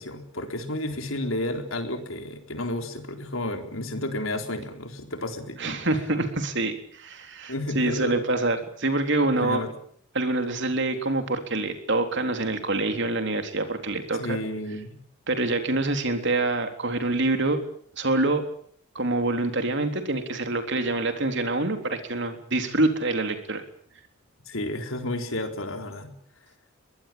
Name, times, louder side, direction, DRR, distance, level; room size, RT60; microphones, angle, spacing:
voice 1, 0.0-5.6 7.5-8.1 9.3-9.7 14.2-15.0 24.5-26.1, left 1 dB, 65° left, 6 dB, 4.0 m, -31 dB
voice 2, 5.6-9.6 10.1-14.4 15.3-17.6 18.0-18.4 19.0-23.6, right 2 dB, 55° right, 6 dB, 3.6 m, -26 dB
23.0 x 19.5 x 8.8 m, 0.62 s
head